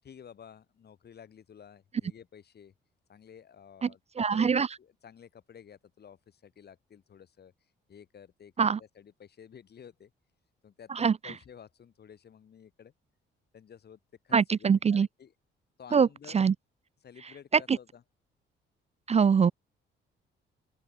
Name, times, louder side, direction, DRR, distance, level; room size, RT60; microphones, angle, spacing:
voice 1, 0.0-2.7 3.1-7.5 7.9-10.1 10.6-12.9 13.5-15.3 15.8-16.4 17.0-18.0, left 8 dB, 55° left, 7.8 m, -52 dB
voice 2, 4.2-4.7 8.6-8.8 11.0-11.1 14.3-15.1 15.9-16.1 16.3-16.5 17.7-17.8 19.1-19.5, right 6 dB, 35° right, 0.6 m, -23 dB
open air
cardioid pair, 90°, 20 cm